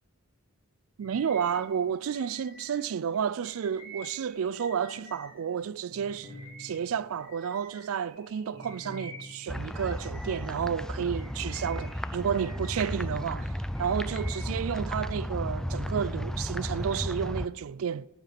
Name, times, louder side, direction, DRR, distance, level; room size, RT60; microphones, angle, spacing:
Bird vocalization bird call bird song, 1.0-5.5 5.9-10.7 11.1-13.2 13.5-14.6, right 1 dB, 25° right, 2.5 m, -50 dB
voice 1, 1.0-6.3 6.6-13.5 13.8-18.1, right 7 dB, 75° right, 0.3 m, -31 dB
sound 1, 5.9-7.2 8.5-9.8 10.9-11.9 13.3-14.2 15.6-16.0, left 1 dB, 50° right, 2.7 m, -46 dB
sound 2, 9.5-17.5, equal, 5° left, 0.3 m, -34 dB
14.5 x 10.5 x 5.8 m
head